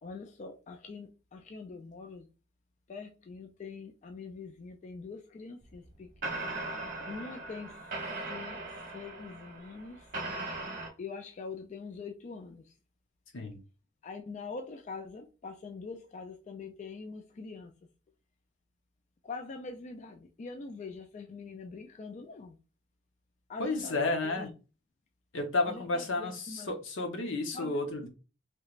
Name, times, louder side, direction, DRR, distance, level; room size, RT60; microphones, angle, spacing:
voice 1, 0.0-2.3 2.9-6.5 7.1-10.1 11.0-12.7 14.0-17.7 19.2-22.6 23.5-24.5 25.6-26.7 27.5-28.1, left 4 dB, 35° left, 0.3 m, -44 dB
sound 1, 5.7-5.8 6.2-10.9, right 2 dB, 45° right, 1.0 m, -39 dB
voice 2, 23.6-24.5 25.3-28.1, left 2 dB, 75° left, 0.8 m, -32 dB
3.2 x 3.1 x 2.4 m
head